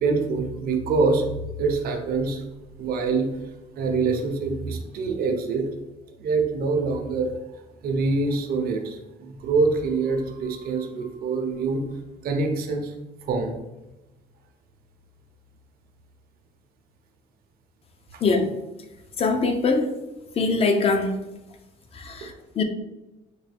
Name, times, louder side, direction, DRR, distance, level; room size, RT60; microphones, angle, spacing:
voice 1, 0.0-1.2 1.6-2.4 2.8-3.3 3.8-5.7 6.2-7.3 7.8-12.0 12.2-12.9 13.2-13.6 18.1-18.2 22.2-22.3, right 4 dB, 65° right, 3 dB, 0.7 m, -25 dB
voice 2, 18.2-18.5 19.2-19.9 20.4-21.2 21.9-22.6, left 3 dB, 35° left, 6 dB, 0.5 m, -23 dB
4.5 x 2.2 x 3.3 m, 1.0 s
cardioid pair, 110°, 17 cm